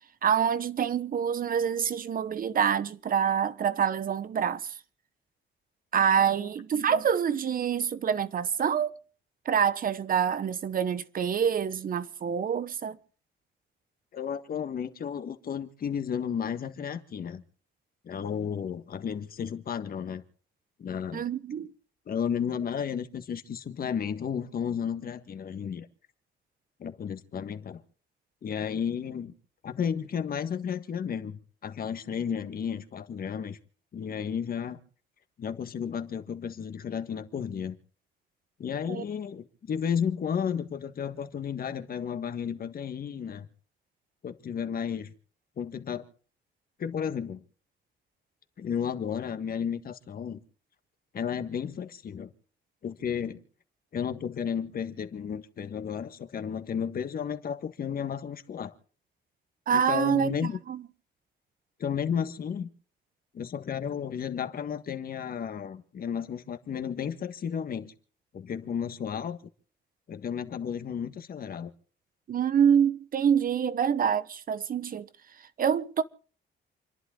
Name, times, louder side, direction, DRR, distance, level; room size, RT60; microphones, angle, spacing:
voice 1, 0.2-4.7 5.9-8.9 9.5-13.0 21.1-21.7 38.9-39.0 59.7-60.4 60.7-60.8 72.3-75.1 75.6-76.0, right 8 dB, 45° right, 1.0 m, -26 dB
voice 2, 14.1-17.4 18.0-20.2 20.8-21.2 22.1-25.9 26.8-27.8 28.4-29.3 29.6-33.6 33.9-34.8 35.4-37.8 38.6-43.5 44.2-45.1 45.6-46.0 46.8-47.4 48.6-50.4 51.1-52.3 52.8-53.4 53.9-58.7 59.7-60.6 61.8-62.7 63.3-67.9 68.3-69.4 70.1-71.7, left 7 dB, 50° left, 1.6 m, -33 dB
28.5 x 11.0 x 3.8 m
cardioid pair, 115°, 20 cm